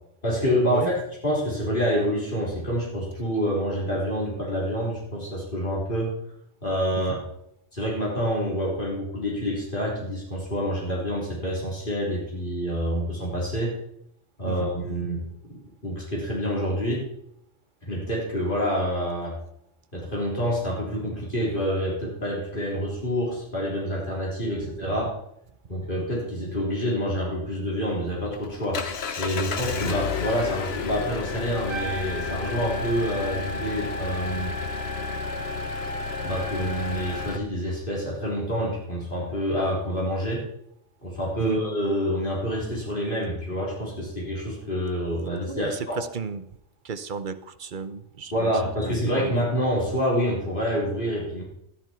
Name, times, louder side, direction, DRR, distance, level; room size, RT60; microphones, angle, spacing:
voice 1, 0.2-6.1 6.6-7.1 7.7-13.8 14.4-15.2 15.5-17.1 17.8-19.4 19.9-25.1 25.7-28.8 29.2-34.5 36.2-40.4 41.0-46.0 48.3-51.4, equal, 45° left, -5 dB, 3.9 m, -27 dB
voice 2, 14.4-15.1 24.8-24.9 25.8-25.9 41.4-41.6 45.5-46.5 46.8-48.5 48.9-49.3, right 5 dB, 50° right, 11 dB, 0.8 m, -34 dB
Engine, 27.8-37.4, left 7 dB, 60° left, 1.1 m, -32 dB
Trumpet, 31.6-37.4, right 2 dB, 75° right, 1.8 m, -35 dB
13.0 x 10.5 x 4.5 m, 0.73 s
omnidirectional pair, 1.2 m